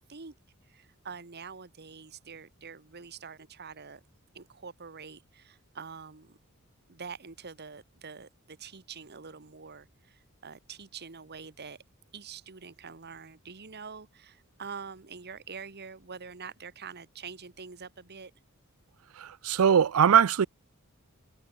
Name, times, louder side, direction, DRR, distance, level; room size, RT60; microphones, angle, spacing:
voice 1, 0.7-4.0 4.3-6.4 6.9-11.8 12.1-18.3, right 5 dB, 50° right, 1.4 m, -45 dB
voice 2, 19.2-20.5, right 8 dB, 85° right, 0.5 m, -21 dB
head